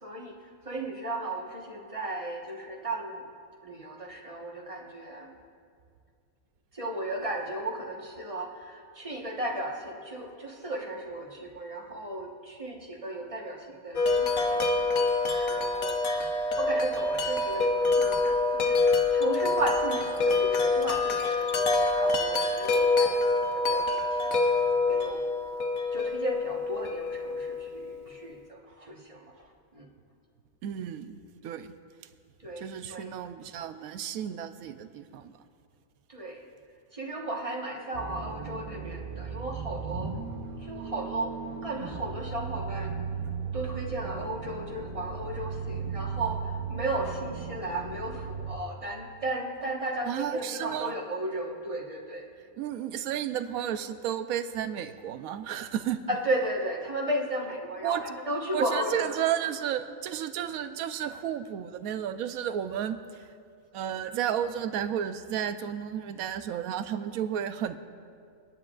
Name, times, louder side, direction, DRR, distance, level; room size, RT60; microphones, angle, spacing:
voice 1, 0.0-3.2 3.6-5.3 6.7-18.8 19.1-24.4 24.9-25.2 25.9-29.9 32.4-33.2 36.1-36.5 36.9-40.1 40.6-43.1 43.5-52.3 56.1-59.2, right 1 dB, 25° right, -1 dB, 1.2 m, -35 dB
Wind chime, 14.0-27.9, left 3 dB, 70° left, 1.3 m, -26 dB
voice 2, 30.6-31.7 32.6-35.4 50.0-51.0 52.6-56.0 57.8-58.0 58.5-63.3 63.7-67.8, right 10 dB, 80° right, 10 dB, 1.0 m, -32 dB
sound 1, 37.9-48.6, right 6 dB, 45° right, 0.8 m, -36 dB
29.0 x 10.0 x 2.4 m, 2.2 s
omnidirectional pair, 1.5 m